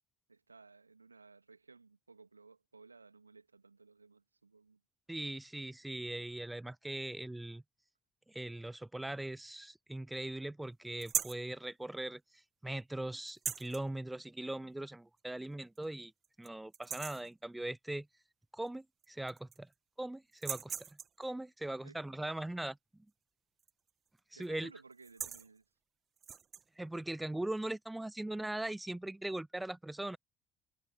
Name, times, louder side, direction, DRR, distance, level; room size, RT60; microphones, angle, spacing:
voice 1, 0.3-4.8 21.8-22.0 24.3-25.6, right 4 dB, 85° right, 2.5 m, -58 dB
voice 2, 5.1-7.6 8.3-16.1 16.4-18.1 18.5-19.7 20.0-20.7 21.2-22.8 24.3-24.7 26.8-30.2, right 1 dB, 10° right, 0.4 m, -40 dB
sound 1, 11.0-11.5 13.3-13.8 15.2-15.3 15.7-15.8 16.2-16.5 16.7-17.3 18.7-18.8 19.0-19.7 20.3-21.2 23.6-23.9 24.2-24.5 24.9-25.5 26.2-26.6, right 8 dB, 40° right, 1.4 m, -40 dB
figure-of-eight pair, 55°, 0 cm